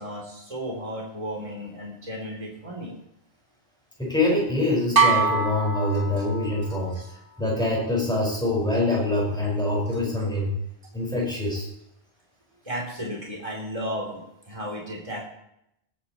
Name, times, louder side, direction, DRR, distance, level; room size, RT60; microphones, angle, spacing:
voice 1, 0.0-2.9 5.9-6.0 6.9-7.1 12.6-15.2, equal, 30° right, -2 dB, 3.3 m, -34 dB
voice 2, 4.0-7.0 7.4-10.5 10.9-11.7, left 2 dB, 5° left, -4 dB, 5.0 m, -25 dB
sound 1, 5.0-6.7, right 4 dB, 60° right, 1.5 m, -23 dB
20.5 x 10.0 x 3.0 m, 0.78 s
omnidirectional pair, 1.1 m